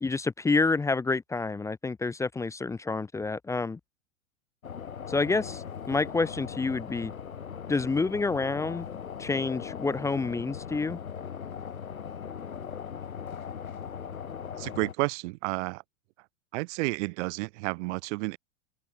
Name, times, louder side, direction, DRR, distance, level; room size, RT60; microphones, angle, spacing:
voice 1, 0.0-3.8 5.1-7.1 7.7-8.9 9.2-11.0, left 3 dB, 10° left, 0.5 m, -28 dB
sound 1, 4.6-14.9, left 7 dB, 90° left, 3.0 m, -39 dB
voice 2, 14.6-15.8 16.5-18.4, right 25 dB, 55° right, 2.2 m, -31 dB
hypercardioid pair, 100°, 40 cm